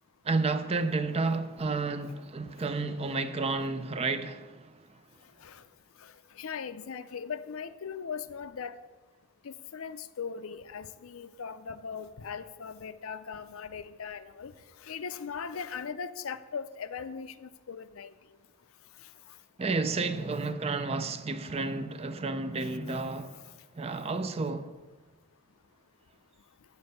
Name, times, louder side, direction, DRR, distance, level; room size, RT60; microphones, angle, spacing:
voice 1, 0.2-4.9 19.6-23.5 23.7-24.8, right 3 dB, 30° right, 0.4 m, -31 dB
voice 2, 6.0-8.8 9.4-14.5 14.8-18.1 22.8-22.9, left 6 dB, 70° left, 0.5 m, -39 dB
7.0 x 6.7 x 7.9 m
head